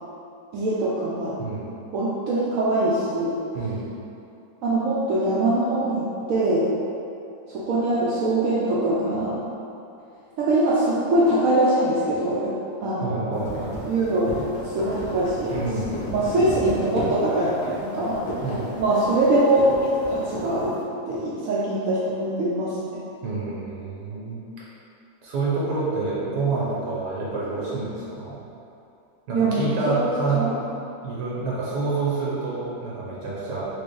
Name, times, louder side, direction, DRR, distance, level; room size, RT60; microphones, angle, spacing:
voice 1, 0.5-1.4 1.9-3.4 4.6-6.7 7.5-9.4 10.4-12.5 12.8-13.5 13.9-14.3 14.6-15.5 16.1-18.2 18.8-20.7 21.1-23.0 29.3-30.0 30.3-30.5, right 1 dB, 70° right, -6 dB, 0.8 m, -23 dB
voice 2, 13.0-13.8 15.5-16.1 18.4-18.7 23.2-24.4 25.2-28.4 29.3-30.7 31.0-33.7, right 3 dB, 90° right, -7 dB, 1.4 m, -28 dB
sound 1, 13.3-20.7, left 1 dB, 55° left, 1.2 m, -33 dB
4.7 x 2.4 x 3.1 m, 2.7 s
omnidirectional pair, 1.8 m